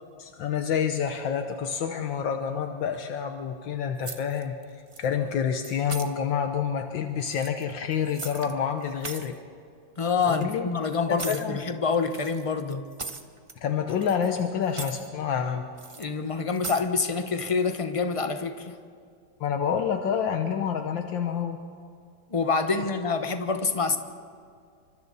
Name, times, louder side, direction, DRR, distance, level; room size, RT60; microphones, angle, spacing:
voice 1, 0.2-4.6 5.0-9.4 10.3-10.7 11.1-11.6 13.6-15.6 19.4-21.6, left 7 dB, 75° left, 6 dB, 1.7 m, -28 dB
sound 1, 4.0-4.6 4.9-5.3 5.6-6.1 7.2-8.5 8.8-9.3 10.2-10.4 11.2-11.5 12.1-13.6 13.9-14.4 14.6-15.1 15.8-16.0 16.5-16.9, right 4 dB, 40° right, 0.4 m, -39 dB
voice 2, 10.0-12.9 16.0-18.8 22.3-24.0, left 4 dB, 25° left, 8 dB, 0.8 m, -26 dB
28.0 x 25.0 x 4.1 m, 2.3 s
omnidirectional pair, 2.1 m